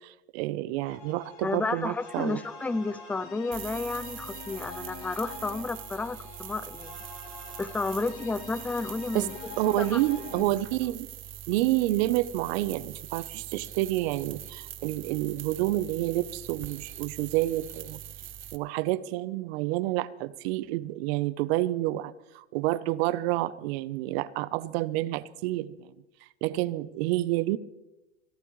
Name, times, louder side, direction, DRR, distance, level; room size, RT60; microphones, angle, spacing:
voice 1, 0.0-2.4 9.1-9.3 9.6-11.1 11.5-18.0 18.5-25.7 26.4-27.6, right 16 dB, 65° right, 16 dB, 0.8 m, -29 dB
sound 1, 0.8-10.4, left 5 dB, 55° left, 3.7 m, -46 dB
voice 2, 1.4-7.0 7.6-9.5 9.8-10.0 10.4-10.5, left 3 dB, 5° left, 17 dB, 0.4 m, -32 dB
sound 2, 3.5-18.6, right 11 dB, 35° right, 1.0 m, -43 dB
26.0 x 12.0 x 3.2 m, 0.99 s
hypercardioid pair, 105°, 34 cm